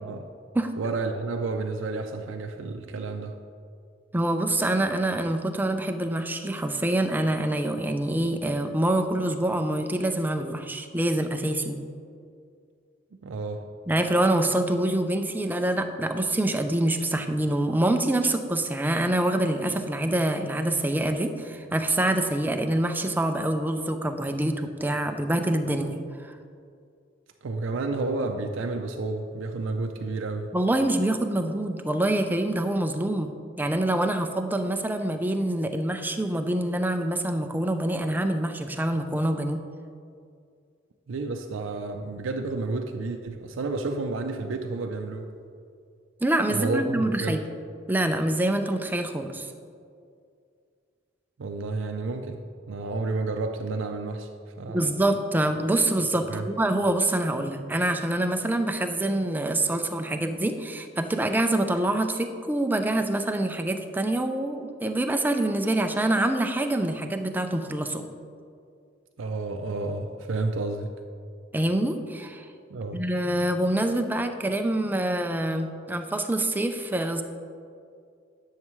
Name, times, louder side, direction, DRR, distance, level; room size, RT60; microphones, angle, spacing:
voice 1, 0.8-3.4 13.2-13.6 27.4-30.5 41.1-45.3 46.5-47.4 51.4-52.4 52.7-54.3 54.6-54.8 56.3-56.5 69.2-70.9 72.7-73.0, right 3 dB, 85° right, 4 dB, 0.5 m, -30 dB
voice 2, 4.1-11.8 13.9-26.3 30.5-33.3 33.6-39.6 46.2-47.4 47.9-49.5 54.7-68.0 71.5-72.5 72.9-77.2, right 1 dB, 10° right, 6 dB, 0.4 m, -26 dB
10.5 x 6.5 x 3.1 m, 2.3 s
head